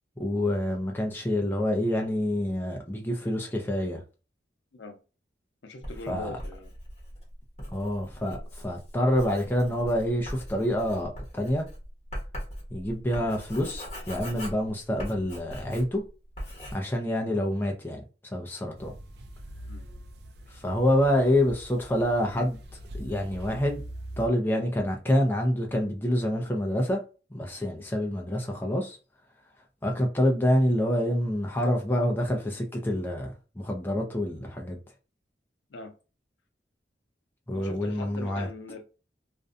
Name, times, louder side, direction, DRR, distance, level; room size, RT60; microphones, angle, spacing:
voice 1, 0.2-4.0 6.1-6.4 7.7-11.7 12.7-16.0 16.7-18.9 20.5-22.6 22.9-23.8 24.2-27.0 27.3-29.0 29.8-34.8 37.5-38.5, left 1 dB, 10° left, 0.4 m, -27 dB
voice 2, 5.6-6.7 13.1-13.2 19.7-19.8 35.7-35.9 37.5-38.8, left 2 dB, 85° left, 0.6 m, -41 dB
Writing, 5.8-16.1 16.4-16.8, equal, 35° left, 1.1 m, -40 dB
sound 1, 18.7-24.3, right 1 dB, 60° right, 0.4 m, -43 dB
2.5 x 2.2 x 2.4 m
head